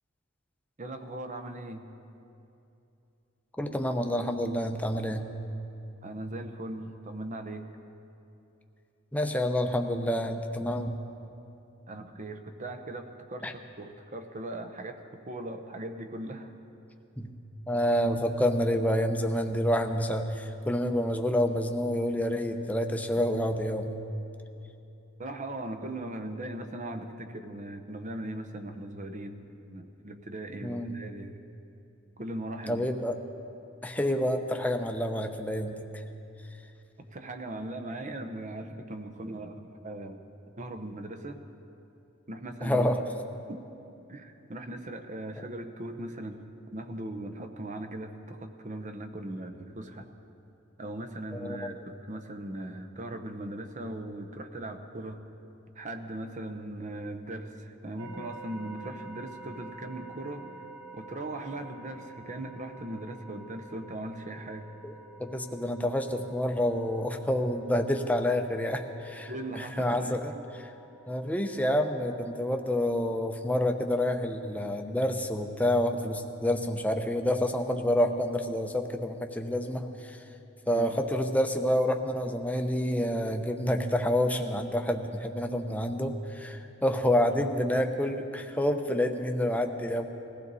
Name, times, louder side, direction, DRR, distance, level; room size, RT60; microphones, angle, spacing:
voice 1, 0.8-1.9 6.0-7.7 11.9-16.5 25.2-31.4 32.2-32.9 37.0-40.2 40.6-41.4 42.3-42.9 43.5-43.6 44.1-46.4 46.7-50.1 50.8-55.2 55.8-60.5 60.9-64.7 69.3-70.4 80.7-81.0, right 1 dB, 35° right, 6 dB, 0.8 m, -39 dB
voice 2, 3.6-5.2 9.1-11.0 13.4-13.5 17.2-17.3 17.7-24.0 30.6-31.0 32.7-33.1 33.8-36.0 42.6-43.0 51.4-51.8 64.8-64.9 65.2-70.3 71.1-80.2 80.7-90.1, left 1 dB, 5° left, 4 dB, 0.8 m, -28 dB
sound 1, 58.0-73.0, right 3 dB, 60° right, 1.2 m, -49 dB
21.0 x 15.0 x 4.1 m, 2.8 s
head